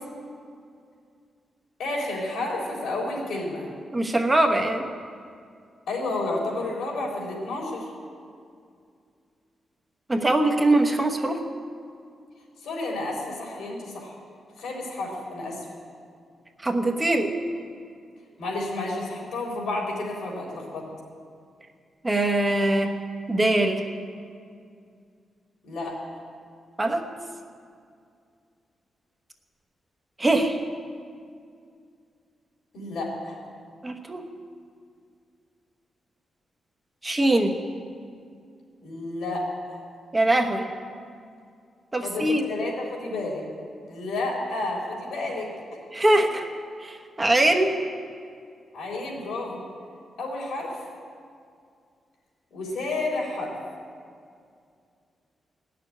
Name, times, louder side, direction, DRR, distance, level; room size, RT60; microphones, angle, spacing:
voice 1, 1.8-3.7 5.9-7.9 12.6-14.2 14.6-15.7 18.4-20.9 25.6-26.0 32.7-33.4 38.8-39.5 42.0-43.4 43.9-45.5 48.7-49.6 50.2-50.8 52.5-53.6, left 2 dB, 90° left, -2 dB, 3.8 m, -31 dB
voice 2, 3.9-4.9 10.1-11.4 16.6-17.3 22.0-23.0 23.3-23.8 26.8-27.0 30.2-30.6 33.8-34.2 37.0-37.6 40.1-40.7 41.9-42.5 45.9-46.5 46.8-47.7, right 1 dB, 15° right, 3 dB, 1.0 m, -22 dB
17.0 x 6.7 x 9.9 m, 2.3 s
wide cardioid pair, 165°, 0 cm